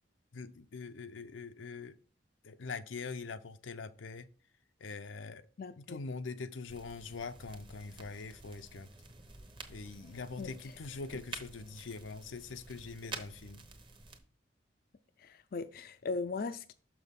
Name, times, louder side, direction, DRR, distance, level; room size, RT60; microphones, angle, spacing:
voice 1, 0.3-2.0 2.4-4.3 4.8-5.4 5.8-8.9 9.7-13.6, left 4 dB, 90° left, 0.6 m, -43 dB
voice 2, 5.6-6.0 10.4-10.5 15.2-16.7, left 4 dB, 50° left, 0.4 m, -38 dB
sound 1, 6.7-14.2, right 3 dB, 25° right, 0.9 m, -50 dB
6.3 x 6.0 x 3.7 m
head